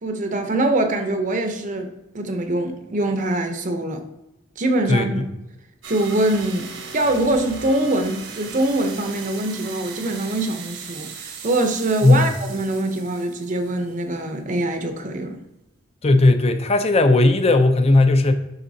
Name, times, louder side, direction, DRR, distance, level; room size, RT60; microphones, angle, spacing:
voice 1, 0.0-1.9 2.1-4.0 4.6-5.2 5.9-15.4, right 1 dB, 40° right, 0.7 m, -23 dB
voice 2, 4.9-5.2 12.0-12.3 16.0-18.3, left 2 dB, 30° left, 0.5 m, -16 dB
sound 1, 5.8-14.1, right 5 dB, 65° right, 1.0 m, -38 dB
11.0 x 3.7 x 2.7 m
head